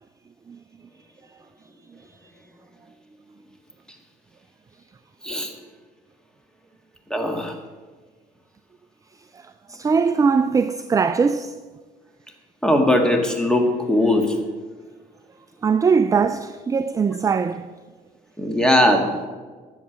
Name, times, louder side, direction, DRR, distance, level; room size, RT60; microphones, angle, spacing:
voice 1, 7.1-7.5 12.6-14.4 18.4-19.3, left 1 dB, 5° left, 1.6 m, -19 dB
voice 2, 9.3-11.6 15.6-17.8, right 5 dB, 20° right, 0.3 m, -21 dB
11.0 x 7.4 x 6.1 m
cardioid pair, 110°, 17 cm